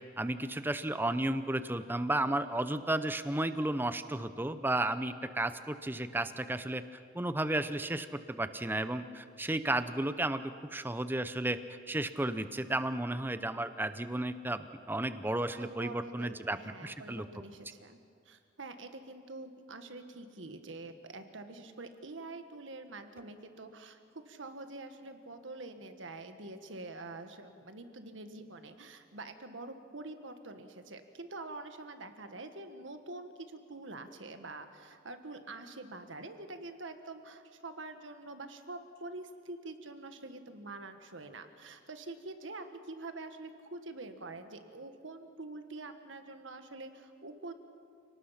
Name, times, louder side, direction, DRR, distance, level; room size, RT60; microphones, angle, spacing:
voice 1, 0.2-6.8 7.1-11.6 11.9-17.3, right 1 dB, 10° right, 11 dB, 0.7 m, -33 dB
voice 2, 15.5-18.0 18.2-47.5, right 2 dB, 85° right, 8 dB, 1.5 m, -46 dB
29.5 x 18.5 x 5.8 m, 2.3 s
head